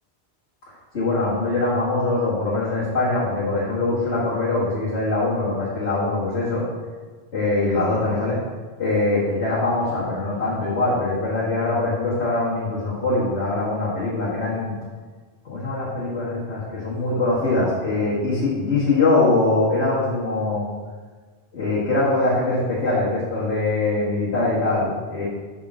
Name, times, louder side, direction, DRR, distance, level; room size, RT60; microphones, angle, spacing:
voice 1, 0.9-6.6 7.3-8.4 8.8-14.8 15.5-20.6 21.5-25.3, left 2 dB, 75° left, -9 dB, 1.9 m, -22 dB
5.0 x 4.8 x 6.2 m, 1.4 s
omnidirectional pair, 1.1 m